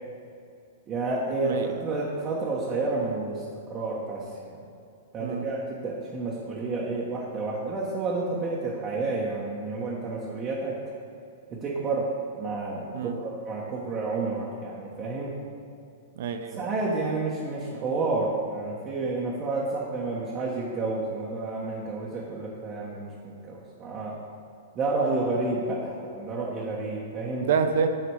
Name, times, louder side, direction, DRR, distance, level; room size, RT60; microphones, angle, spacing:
voice 1, 0.9-3.4 3.7-4.6 5.1-10.8 11.5-15.3 16.6-24.2 24.7-27.5, right 3 dB, 30° right, -5 dB, 1.3 m, -30 dB
voice 2, 1.4-1.8 5.2-5.4 12.9-13.2 16.2-16.6 27.4-27.9, right 6 dB, 65° right, 7 dB, 0.7 m, -27 dB
9.4 x 4.0 x 4.9 m, 2.5 s
hypercardioid pair, 120°, 0 cm